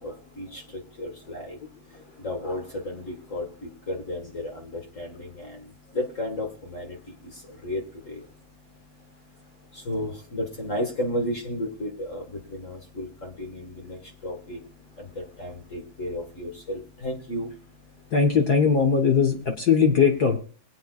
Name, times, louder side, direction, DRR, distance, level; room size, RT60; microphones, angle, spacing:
voice 1, 0.0-18.1, left 1 dB, 35° left, 1 dB, 1.4 m, -34 dB
voice 2, 18.1-20.4, left 6 dB, 65° left, 3 dB, 0.9 m, -20 dB
24.0 x 8.7 x 2.4 m, 0.43 s
omnidirectional pair, 3.5 m